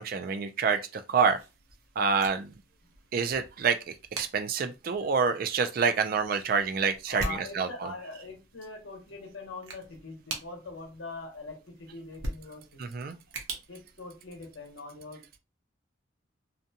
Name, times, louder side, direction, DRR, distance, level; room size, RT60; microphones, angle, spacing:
voice 1, 0.0-1.4 2.0-2.5 3.1-3.8 4.2-7.2 7.6-7.7 12.8-13.2, right 5 dB, 45° right, 0.3 m, -27 dB
sound 1, 1.1-14.8, right 2 dB, 85° right, 0.7 m, -44 dB
voice 2, 7.1-13.0 13.7-15.4, left 3 dB, 75° left, 0.9 m, -43 dB
2.5 x 2.2 x 2.7 m
head